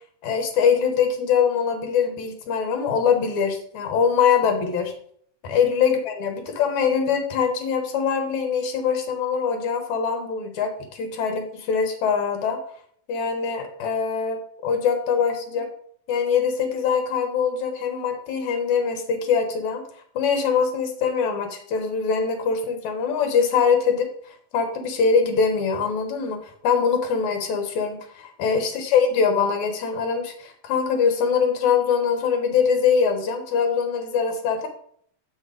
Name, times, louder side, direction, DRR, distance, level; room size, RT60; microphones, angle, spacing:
voice 1, 0.2-4.9 5.4-12.6 13.1-15.7 16.1-19.8 20.2-34.7, left 6 dB, 75° left, 5 dB, 2.6 m, -23 dB
7.0 x 6.4 x 5.0 m, 0.63 s
omnidirectional pair, 3.4 m